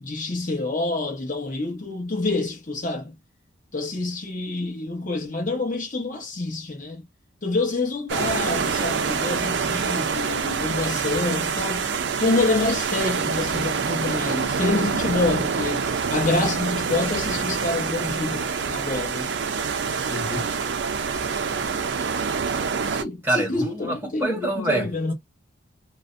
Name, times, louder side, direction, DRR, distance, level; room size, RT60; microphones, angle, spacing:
voice 1, 0.0-3.1 3.7-7.0 7.4-11.8 12.1-19.3 22.9-25.1, left 2 dB, 40° left, 0.9 m, -27 dB
sound 1, 8.1-23.0, right 5 dB, 60° right, 0.4 m, -26 dB
voice 2, 20.1-20.5 23.2-24.9, right 1 dB, 10° right, 0.8 m, -26 dB
2.4 x 2.1 x 2.5 m
head